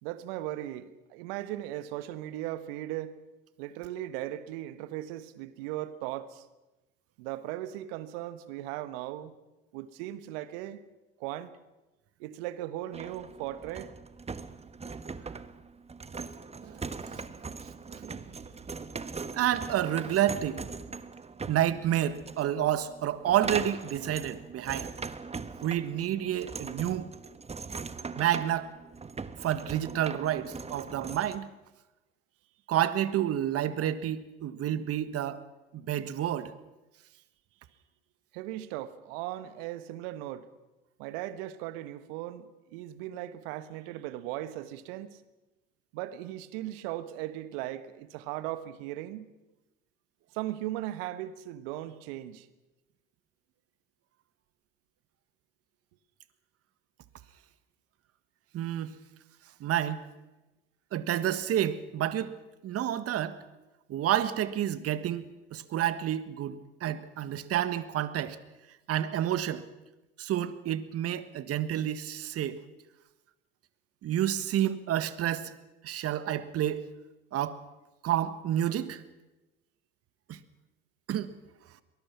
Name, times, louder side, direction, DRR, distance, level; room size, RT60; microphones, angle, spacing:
voice 1, 0.0-3.2 3.6-6.5 7.2-9.3 9.7-10.8 11.2-11.5 12.2-13.9 38.3-40.5 41.0-45.2 45.9-49.3 50.3-52.5, right 14 dB, 70° right, 1.4 m, -38 dB
sound 1, 12.9-31.4, right 4 dB, 20° right, 1.4 m, -41 dB
voice 2, 19.3-20.6 21.5-24.9 25.6-27.1 28.2-28.7 29.4-31.5 32.7-35.4 35.7-36.5 58.5-58.9 59.6-60.1 60.9-62.3 62.6-63.4 63.9-68.4 68.9-69.6 70.2-72.6 74.0-75.5 75.8-76.9 77.3-77.6 78.0-79.0 80.3-80.4 81.1-81.3, right 11 dB, 50° right, 1.6 m, -29 dB
23.0 x 20.5 x 6.0 m
hypercardioid pair, 65°, 30 cm